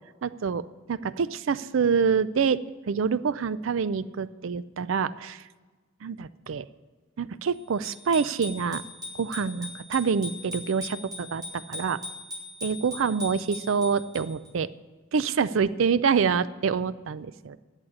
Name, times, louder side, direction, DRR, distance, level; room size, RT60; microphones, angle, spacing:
voice 1, 0.2-2.6 2.9-5.4 6.0-6.7 7.2-8.8 9.1-12.0 12.6-14.7 15.1-17.6, right 6 dB, 70° right, 16 dB, 0.4 m, -26 dB
Bicycle bell, 7.8-14.5, left 2 dB, 20° right, 4.0 m, -40 dB
11.0 x 8.1 x 9.7 m, 1.3 s
head